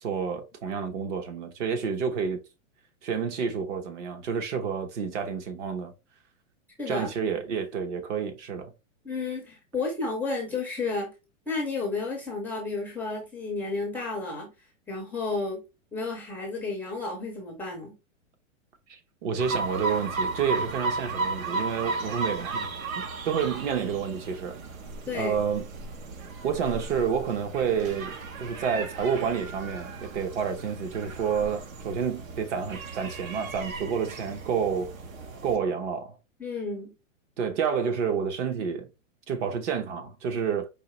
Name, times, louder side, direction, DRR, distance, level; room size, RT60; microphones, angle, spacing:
voice 1, 0.0-2.4 3.0-5.9 6.9-8.7 18.9-22.7 23.0-24.6 25.1-25.7 26.4-34.9 35.4-36.2 37.4-38.9 39.3-40.7, right 6 dB, 60° right, 1.2 m, -29 dB
voice 2, 6.8-7.1 9.0-11.1 11.5-14.5 14.9-15.6 15.9-17.9 25.1-25.4 36.4-36.9, left 3 dB, 5° left, 0.4 m, -32 dB
sound 1, 19.4-35.6, right 3 dB, 85° right, 1.2 m, -35 dB
4.8 x 2.9 x 3.0 m
supercardioid pair, 150°, 40 cm